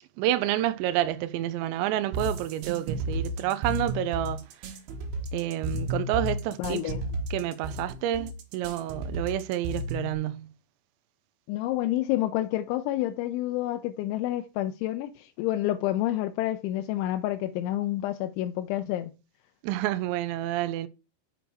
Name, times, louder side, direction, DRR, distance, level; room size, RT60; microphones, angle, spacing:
voice 1, 0.2-4.4 5.3-6.9 7.3-10.5 19.6-20.9, right 13 dB, 85° right, 2.6 m, -29 dB
sound 1, 2.1-10.1, right 1 dB, 65° right, 3.0 m, -32 dB
voice 2, 6.6-7.0 11.5-19.1, left 14 dB, 80° left, 2.9 m, -29 dB
6.8 x 6.3 x 4.7 m
omnidirectional pair, 5.6 m